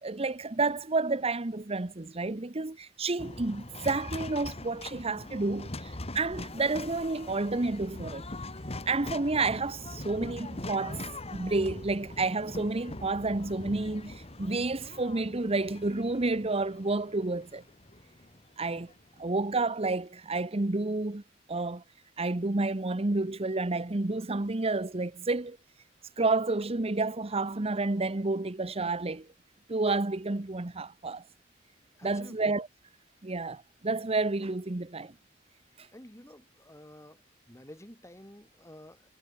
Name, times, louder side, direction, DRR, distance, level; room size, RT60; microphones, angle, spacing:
voice 1, 0.0-8.2 8.9-17.6 18.6-18.9 19.2-21.2 21.5-21.8 22.2-25.6 26.2-29.3 29.7-31.2 32.0-32.7 33.2-35.1 35.8-35.9, right 3 dB, 30° right, 0.9 m, -30 dB
sound 1, 3.2-19.4, left 2 dB, 30° left, 2.9 m, -42 dB
voice 2, 32.0-32.4 35.9-37.2 37.5-39.1, left 1 dB, 15° left, 5.1 m, -50 dB
head